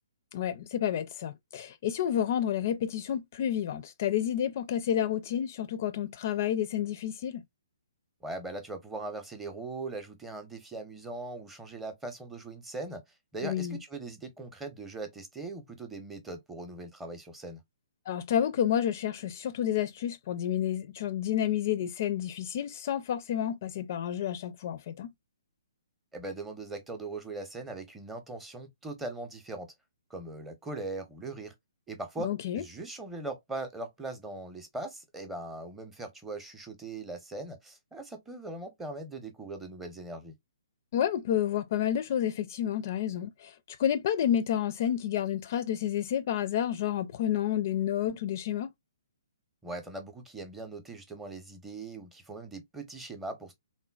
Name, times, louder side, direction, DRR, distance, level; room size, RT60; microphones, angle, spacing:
voice 1, 0.3-7.4 13.4-13.8 18.1-25.1 32.2-32.6 40.9-48.7, left 10 dB, 40° left, 0.4 m, -30 dB
voice 2, 8.2-13.0 13.3-17.6 26.1-29.7 30.1-31.5 31.9-40.3 49.6-53.5, right 2 dB, 10° right, 0.6 m, -40 dB
3.7 x 2.1 x 2.2 m
figure-of-eight pair, 130°, 2 cm